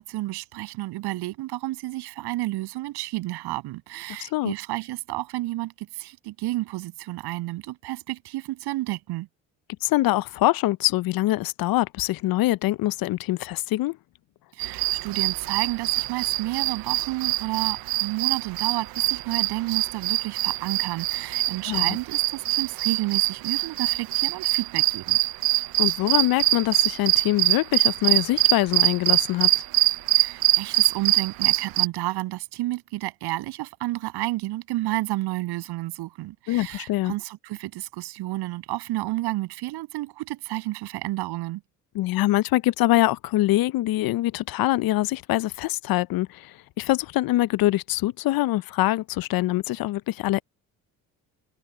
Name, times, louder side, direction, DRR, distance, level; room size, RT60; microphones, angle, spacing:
voice 1, 0.0-9.3 14.5-25.2 30.1-41.6, right 18 dB, 80° right, 7.9 m, -31 dB
voice 2, 4.2-4.5 9.8-14.0 21.7-21.8 25.8-29.6 36.5-37.1 41.9-50.4, left 16 dB, 65° left, 0.6 m, -24 dB
sound 1, 14.6-31.9, right 17 dB, 65° right, 0.7 m, -23 dB
supercardioid pair, 70°, 39 cm